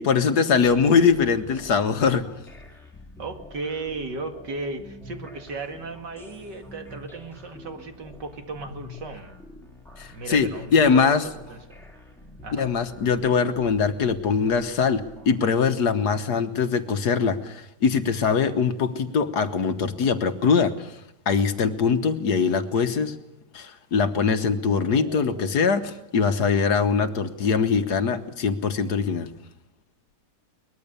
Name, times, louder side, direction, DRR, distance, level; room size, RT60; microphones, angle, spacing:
voice 1, 0.0-2.3 10.0-11.3 12.5-21.0 21.2-23.2 23.5-29.3, left 5 dB, 70° left, 9 dB, 1.7 m, -22 dB
sound 1, 0.6-15.4, left 2 dB, ahead, 4.2 m, -46 dB
voice 2, 3.2-9.3 10.1-11.2 11.5-11.8 12.4-12.7 22.7-23.0 24.7-25.7, right 3 dB, 80° right, 5 dB, 2.9 m, -36 dB
23.0 x 20.5 x 6.9 m, 0.84 s
omnidirectional pair, 1.9 m